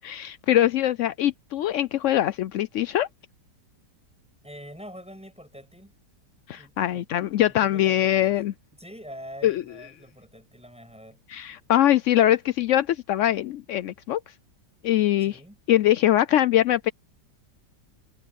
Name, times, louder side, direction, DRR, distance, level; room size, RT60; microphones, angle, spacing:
voice 1, 0.0-3.1 6.5-8.5 9.4-9.6 11.3-14.2 14.8-15.4 15.7-16.9, left 12 dB, 75° left, 0.7 m, -22 dB
voice 2, 4.4-5.9 6.6-8.4 8.7-11.2 15.2-15.6, equal, 5° right, 7.2 m, -45 dB
omnidirectional pair, 1.8 m